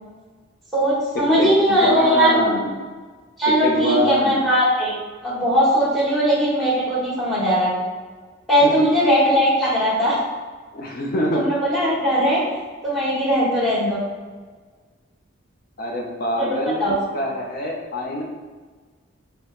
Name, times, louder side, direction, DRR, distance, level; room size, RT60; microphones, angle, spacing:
voice 1, 0.7-2.4 3.4-5.0 5.2-7.7 8.5-10.1 11.3-12.4 12.8-14.0 16.4-17.0, equal, ahead, -8 dB, 1.3 m, -19 dB
voice 2, 1.4-2.7 3.6-4.4 8.6-8.9 10.7-11.4 15.8-18.2, left 1 dB, 50° left, -1 dB, 0.6 m, -24 dB
4.7 x 2.9 x 3.1 m, 1.4 s
head